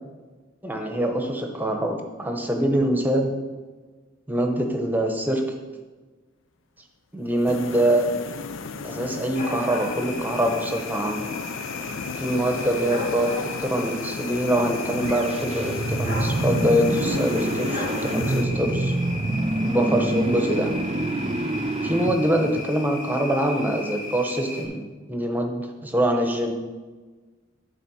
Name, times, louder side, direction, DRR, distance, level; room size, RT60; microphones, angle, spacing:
voice 1, 0.6-3.4 4.3-5.4 7.1-8.1 8.8-11.3 12.2-18.9 19.6-20.7 21.8-26.5, right 1 dB, 10° right, 3 dB, 0.9 m, -24 dB
sound 1, 7.5-18.5, left 4 dB, 80° left, 0.5 m, -34 dB
sound 2, 9.3-24.7, left 2 dB, 45° left, 1.8 m, -36 dB
sound 3, 15.0-23.1, right 1 dB, 30° right, 0.5 m, -27 dB
11.0 x 4.1 x 5.6 m, 1.3 s
head